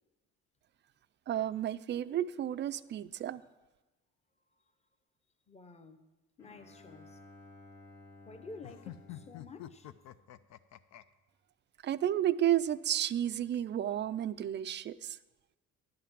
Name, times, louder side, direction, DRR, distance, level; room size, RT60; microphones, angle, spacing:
voice 1, 1.3-3.4 11.8-15.2, right 11 dB, 40° right, 0.4 m, -32 dB
voice 2, 5.5-6.0 6.4-7.2 8.3-9.9, left 3 dB, 20° left, 0.9 m, -50 dB
Bowed string instrument, 6.4-10.7, left 2 dB, 85° left, 2.1 m, -56 dB
sound 1, 8.6-11.0, left 13 dB, 65° left, 0.5 m, -47 dB
11.0 x 5.8 x 7.3 m
cardioid pair, 105°, 30 cm